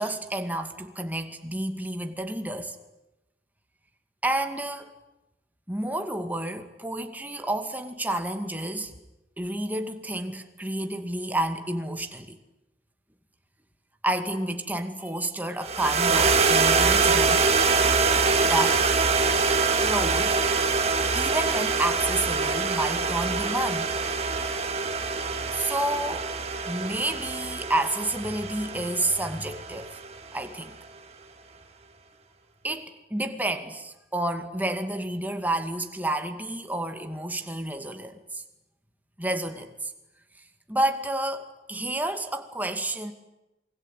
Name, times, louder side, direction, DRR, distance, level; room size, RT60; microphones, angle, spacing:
voice 1, 0.0-2.8 4.2-4.9 5.7-8.9 9.4-12.4 14.0-17.5 18.4-18.8 19.8-20.4 21.1-23.9 25.5-26.3 26.6-30.0 30.3-30.8 32.6-38.4 39.2-39.9 40.7-43.1, right 1 dB, 10° right, 6 dB, 2.3 m, -30 dB
sound 1, 15.6-30.1, right 4 dB, 35° right, 2.4 m, -24 dB
28.0 x 21.5 x 9.3 m, 0.97 s
head